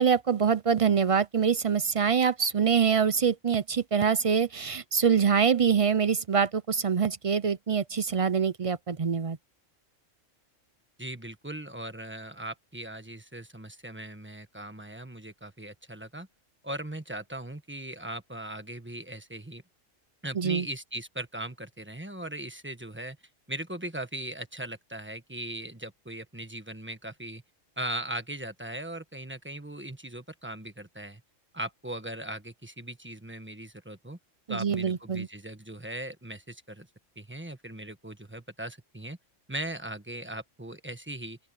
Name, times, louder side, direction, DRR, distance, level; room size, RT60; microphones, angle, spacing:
voice 1, 0.0-9.4 20.3-20.7 34.5-35.3, right 6 dB, 45° right, 0.4 m, -25 dB
voice 2, 11.0-16.3 16.6-19.6 20.2-23.2 23.5-27.4 27.8-31.2 31.5-34.2 34.5-36.9 37.2-39.2 39.5-41.4, right 1 dB, 10° right, 1.3 m, -39 dB
open air
omnidirectional pair, 1.3 m